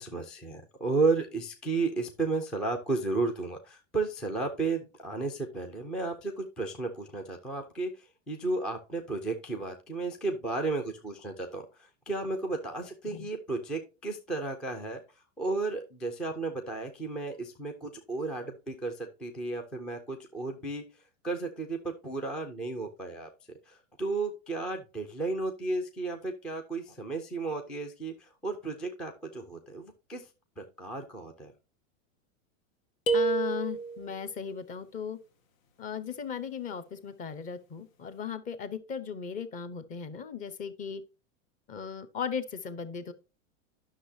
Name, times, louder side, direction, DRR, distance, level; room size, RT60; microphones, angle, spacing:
voice 1, 0.0-15.0 15.4-20.8 21.2-30.3 30.6-31.5, right 3 dB, 5° left, 0.3 m, -33 dB
sound 1, 33.1-34.2, right 4 dB, 85° left, 1.8 m, -28 dB
voice 2, 33.1-35.2 35.8-41.0 41.7-43.1, left 7 dB, 20° left, 0.8 m, -37 dB
10.0 x 6.4 x 2.7 m
supercardioid pair, 150°, 39 cm